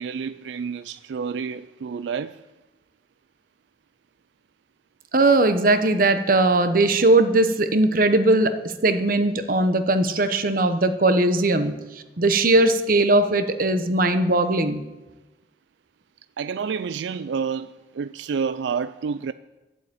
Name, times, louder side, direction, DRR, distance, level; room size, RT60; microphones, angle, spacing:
voice 1, 0.0-2.4 16.4-19.3, right 6 dB, 85° right, 0.4 m, -29 dB
voice 2, 5.1-14.8, right 2 dB, 50° right, 1.1 m, -19 dB
11.5 x 8.1 x 9.0 m
head